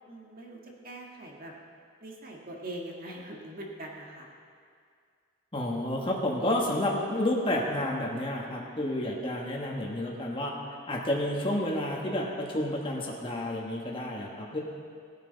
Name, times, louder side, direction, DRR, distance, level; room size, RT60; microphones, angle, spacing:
voice 1, 0.1-1.5 2.0-4.3, right 1 dB, 45° right, -1 dB, 1.7 m, -42 dB
voice 2, 5.5-10.5 10.9-14.6, left 1 dB, 25° left, -2 dB, 1.4 m, -30 dB
17.5 x 9.1 x 4.0 m, 2.2 s
head